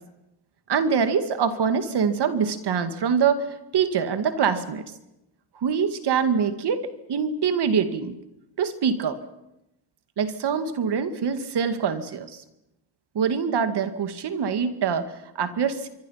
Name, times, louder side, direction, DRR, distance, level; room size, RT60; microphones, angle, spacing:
voice 1, 0.7-3.5 3.7-4.8 5.6-8.2 8.6-9.2 10.2-12.4 13.1-15.9, right 6 dB, 60° right, 9 dB, 2.2 m, -24 dB
27.5 x 23.0 x 5.8 m, 0.90 s
cardioid pair, 80°, 46 cm